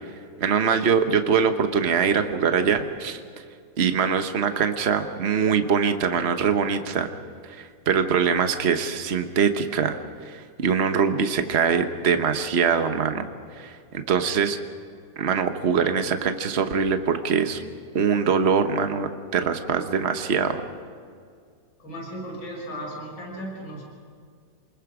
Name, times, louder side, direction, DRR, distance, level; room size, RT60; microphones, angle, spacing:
voice 1, 0.4-3.2 3.8-7.1 7.6-10.0 10.3-13.3 13.6-14.6 15.2-17.6 17.9-20.6, right 6 dB, 40° right, 7 dB, 1.2 m, -23 dB
voice 2, 21.8-23.8, equal, 80° left, -2 dB, 6.7 m, -35 dB
29.0 x 21.0 x 5.0 m, 2.2 s
omnidirectional pair, 2.0 m